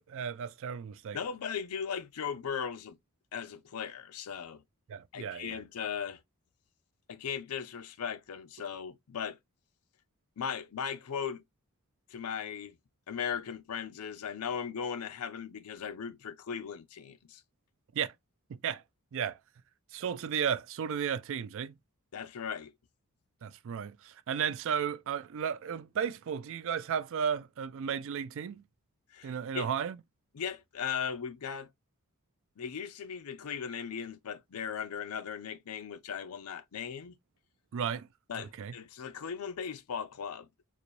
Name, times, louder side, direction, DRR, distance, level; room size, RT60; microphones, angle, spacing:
voice 1, 0.0-1.2 4.9-5.6 17.9-18.1 18.5-18.8 19.1-19.4 19.9-21.8 23.4-28.6 29.2-30.0 37.7-38.1 38.4-38.7, right 7 dB, 60° right, 0.4 m, -34 dB
voice 2, 1.1-3.0 3.3-4.6 5.1-6.2 7.1-9.4 10.4-11.4 12.1-12.8 13.1-17.4 22.1-22.7 29.1-29.7 30.3-31.7 32.6-37.2 38.3-40.5, left 7 dB, 85° left, 0.5 m, -38 dB
3.9 x 2.5 x 3.0 m
head